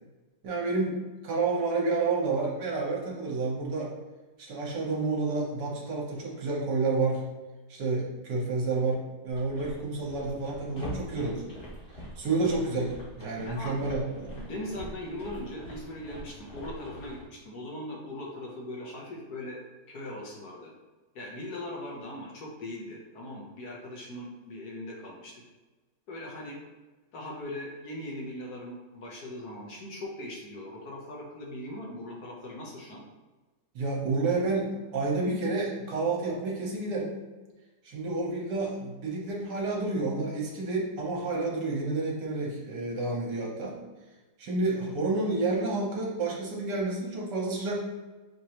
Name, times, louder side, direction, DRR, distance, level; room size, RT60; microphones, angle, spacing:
voice 1, 0.4-0.9 1.2-3.9 4.4-7.2 7.7-11.4 12.2-14.3 33.7-37.1 37.8-43.8 44.4-47.8, right 3 dB, 70° right, -3 dB, 1.6 m, -29 dB
sound 1, 9.3-17.2, equal, 35° left, 1.4 m, -44 dB
voice 2, 14.4-19.6 19.9-20.7 21.1-25.4 26.1-26.6 27.1-33.0, left 1 dB, 65° left, -2 dB, 1.3 m, -40 dB
6.1 x 2.9 x 2.9 m, 1.2 s
omnidirectional pair, 2.0 m